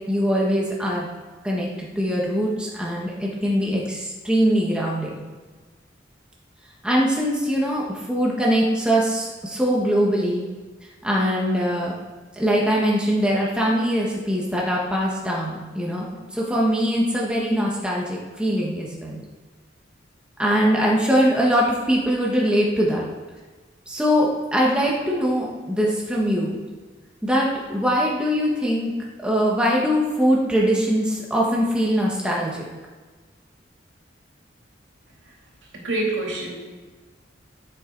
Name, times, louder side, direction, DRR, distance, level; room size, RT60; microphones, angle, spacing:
voice 1, 0.1-1.1 1.4-5.2 6.8-10.4 11.0-11.9 12.3-16.1 16.3-19.2 20.4-23.1 23.9-26.6 27.2-28.9 29.2-32.7, equal, 5° right, -3 dB, 1.4 m, -22 dB
voice 2, 35.7-36.6, right 2 dB, 80° right, -3 dB, 3.1 m, -26 dB
14.0 x 7.5 x 4.0 m, 1.4 s
head